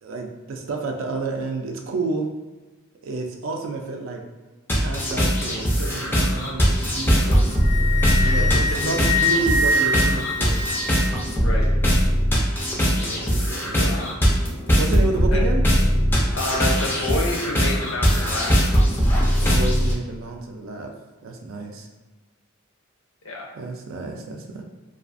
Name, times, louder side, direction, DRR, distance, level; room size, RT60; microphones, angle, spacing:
voice 1, 0.0-2.3 3.0-4.2 4.8-7.5 8.2-10.6 12.8-14.1 14.8-15.6 19.3-20.9 21.2-21.9 23.6-24.6, right 3 dB, 70° right, 2 dB, 0.4 m, -30 dB
sound 1, 4.7-19.9, equal, 10° left, 0.4 m, -20 dB
Wind instrument woodwind instrument, 7.2-11.2, left 1 dB, 90° left, 0.9 m, -24 dB
voice 2, 8.2-8.6 11.4-11.7 13.7-14.1 15.3-15.5 16.3-18.5 23.2-23.5, left 1 dB, 70° left, -1 dB, 0.5 m, -28 dB
2.4 x 2.4 x 2.4 m, 1.2 s
head